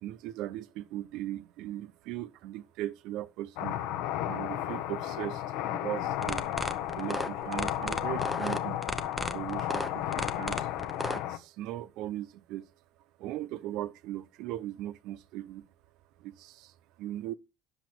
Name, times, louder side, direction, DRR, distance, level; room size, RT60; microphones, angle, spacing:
voice 1, 0.0-3.8 4.2-6.5 6.9-8.8 9.3-10.7 11.0-12.7 13.2-15.7 16.2-17.3, right 14 dB, 65° right, 0.8 m, -38 dB
sound 1, 3.6-11.4, left 12 dB, 80° left, 1.0 m, -33 dB
sound 2, 6.1-11.2, left 1 dB, 5° left, 0.8 m, -33 dB
10.0 x 7.1 x 4.6 m
cardioid pair, 160°, 0 cm